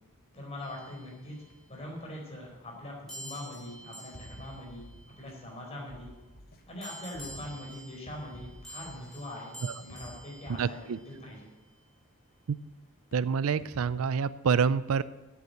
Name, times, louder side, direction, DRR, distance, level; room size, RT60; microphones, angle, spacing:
voice 1, 0.3-1.4 1.7-4.9 5.2-6.1 6.7-11.5, left 1 dB, 30° left, -2 dB, 4.3 m, -42 dB
sound 1, 0.6-1.8 3.1-5.8 6.8-11.3, right 1 dB, 5° left, 3.6 m, -49 dB
sound 2, 1.5-1.6 2.0-2.1 2.4-2.5 4.1-5.8 7.2-9.1 9.9-11.9 13.1-14.4, equal, 65° left, 2.7 m, -53 dB
sound 3, 4.6-5.6 5.9-6.9 7.1-8.1 8.4-9.4, left 1 dB, 45° left, 1.2 m, -53 dB
voice 2, 10.5-11.0 12.5-12.6 13.1-15.0, right 6 dB, 80° right, 17 dB, 0.4 m, -27 dB
9.9 x 8.4 x 7.8 m, 1.1 s
head